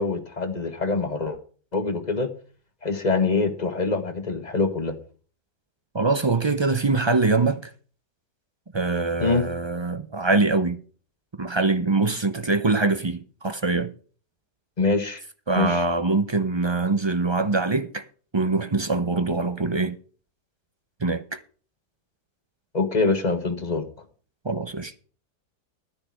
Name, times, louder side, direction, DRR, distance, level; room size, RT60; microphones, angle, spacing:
voice 1, 0.0-1.4 1.7-2.3 2.8-4.9 9.2-9.5 14.8-15.2 15.5-15.8 22.7-23.8, left 3 dB, 25° left, 1.5 m, -24 dB
voice 2, 5.9-7.6 8.7-10.8 11.4-13.9 15.5-18.0 18.3-20.0 21.0-21.4 24.4-24.9, right 3 dB, 45° right, 0.3 m, -23 dB
11.5 x 10.0 x 4.6 m
omnidirectional pair, 1.7 m